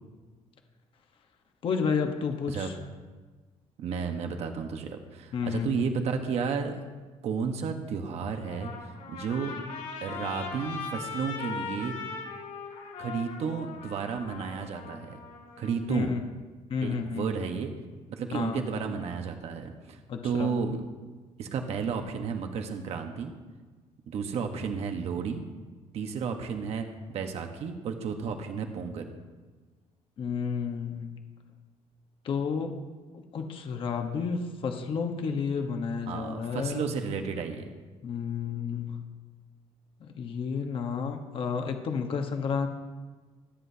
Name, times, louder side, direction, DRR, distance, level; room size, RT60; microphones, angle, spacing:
voice 1, 1.6-2.7 5.3-5.8 15.9-16.2 16.7-17.3 18.3-18.6 20.1-20.5 30.2-31.2 32.2-32.7 33.1-36.9 38.0-39.0 40.0-42.7, left 6 dB, 40° left, 4 dB, 1.2 m, -31 dB
voice 2, 3.8-6.8 7.2-8.7 9.1-9.5 10.0-12.0 13.0-15.2 15.6-16.1 16.8-17.7 18.1-20.8 21.4-23.3 24.1-25.4 25.9-29.0 36.1-37.7, right 6 dB, 55° right, 5 dB, 1.2 m, -32 dB
Trumpet, 8.3-15.7, left 5 dB, 75° left, 4.8 m, -40 dB
25.5 x 9.9 x 2.8 m, 1.3 s
cardioid pair, 160°, 13 cm